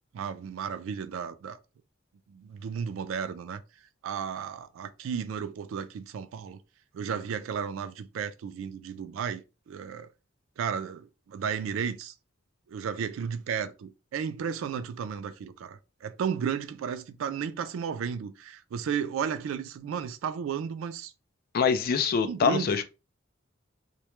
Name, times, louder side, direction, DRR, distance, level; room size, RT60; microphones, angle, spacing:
voice 1, 0.1-1.6 2.3-3.6 4.0-6.6 6.9-10.1 10.6-12.1 12.7-21.1 22.2-22.8, right 7 dB, 85° right, 0.3 m, -33 dB
voice 2, 21.5-22.8, left 6 dB, 50° left, 0.3 m, -24 dB
2.1 x 2.1 x 2.9 m
head